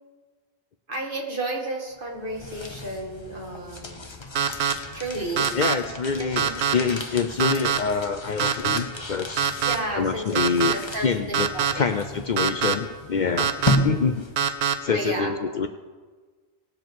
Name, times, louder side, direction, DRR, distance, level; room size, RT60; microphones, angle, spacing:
voice 1, 0.9-4.0 4.9-5.5 6.2-6.6 9.6-10.4 10.7-11.9 14.9-15.6, right 2 dB, 55° right, 0 dB, 2.1 m, -32 dB
sound 1, 2.0-14.6, left 1 dB, 25° left, 1.0 m, -33 dB
sound 2, 4.4-4.7 5.4-5.7 6.4-6.7 7.4-7.8 8.4-8.8 9.4-9.8 10.4-10.7 11.3-11.7 12.4-12.7 13.4-13.8 14.4-14.7, right 7 dB, 75° right, 1.0 m, -23 dB
voice 2, 5.6-9.5 9.9-13.5 13.8-14.3 14.8-15.7, left 5 dB, 55° left, 8 dB, 0.6 m, -26 dB
19.0 x 7.4 x 4.7 m, 1.4 s
omnidirectional pair, 1.1 m